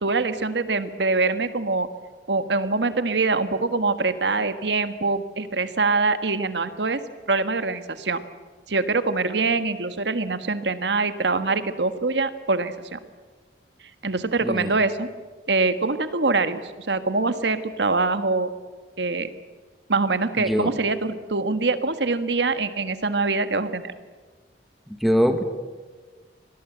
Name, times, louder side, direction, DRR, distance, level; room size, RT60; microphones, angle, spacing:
voice 1, 0.0-1.9 2.3-7.0 7.3-8.2 8.7-13.0 14.0-15.1 15.5-18.5 19.0-19.3 19.9-23.9, right 3 dB, 75° right, 11 dB, 1.6 m, -24 dB
voice 2, 14.4-14.7 20.4-20.7 25.0-25.4, equal, ahead, 6 dB, 1.6 m, -22 dB
25.5 x 19.0 x 8.0 m, 1.4 s
head